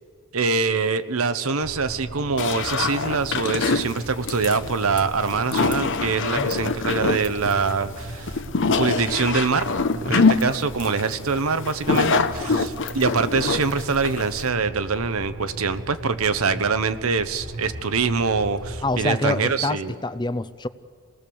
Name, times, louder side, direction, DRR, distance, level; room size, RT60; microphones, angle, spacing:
voice 1, 0.3-8.3 8.7-9.7 10.0-19.9, right 4 dB, 85° right, 11 dB, 1.0 m, -24 dB
sound 1, 1.6-19.0, right 1 dB, 65° right, 1.7 m, -38 dB
sound 2, 2.4-14.5, left 4 dB, 60° left, 0.9 m, -24 dB
voice 2, 18.8-20.7, left 2 dB, 20° left, 14 dB, 0.6 m, -27 dB
28.0 x 19.5 x 7.0 m, 2.1 s
head